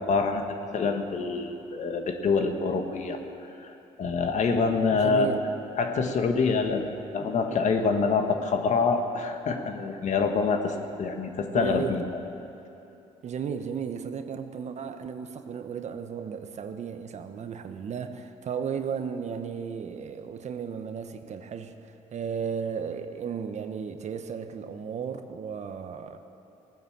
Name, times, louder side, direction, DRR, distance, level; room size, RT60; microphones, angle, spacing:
voice 1, 0.1-3.2 3.6-5.3 5.8-12.0, left 4 dB, 55° left, 1.6 m, -26 dB
voice 2, 4.9-5.5 7.2-7.6 11.5-12.0 13.2-26.2, right 7 dB, 55° right, 1.1 m, -34 dB
18.5 x 9.5 x 7.3 m
supercardioid pair, 80°, 14 cm